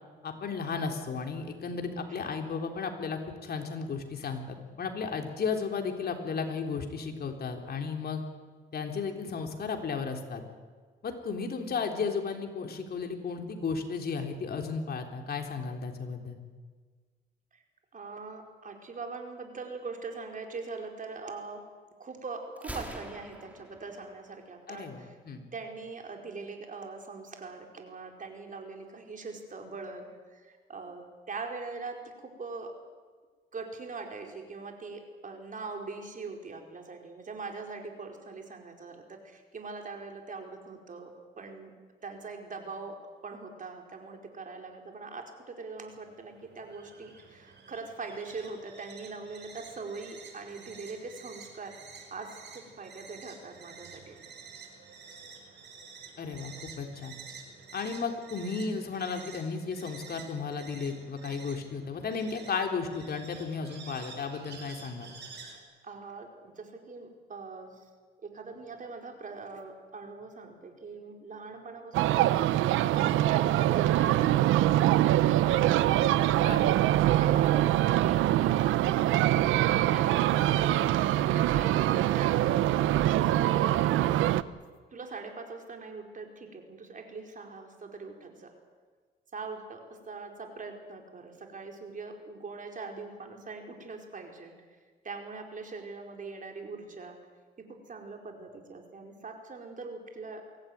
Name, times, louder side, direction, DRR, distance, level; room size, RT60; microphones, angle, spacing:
voice 1, 0.2-8.2 8.7-10.4 11.0-16.4 24.7-25.4 56.2-57.1 57.7-65.1 73.0-73.2 76.4-76.7 79.7-79.9, left 5 dB, 50° left, 4 dB, 3.7 m, -34 dB
voice 2, 17.9-21.6 22.0-25.1 25.5-32.7 33.5-41.7 42.0-42.9 43.2-51.7 52.1-54.2 65.8-67.7 68.2-72.7 72.9-76.6 77.1-79.0 79.6-80.2 80.5-84.2 84.9-88.5 89.3-94.5 95.0-97.2 97.7-100.6, right 4 dB, 40° right, 3 dB, 4.7 m, -42 dB
Gunshot gunfire, 22.6-24.5, right 1 dB, 5° right, 3.6 m, -44 dB
sound 1, 45.9-65.6, right 5 dB, 60° right, 4.7 m, -50 dB
sound 2, 71.9-84.4, right 14 dB, 90° right, 0.8 m, -24 dB
23.5 x 16.5 x 9.5 m, 1.5 s
cardioid pair, 90°, 20 cm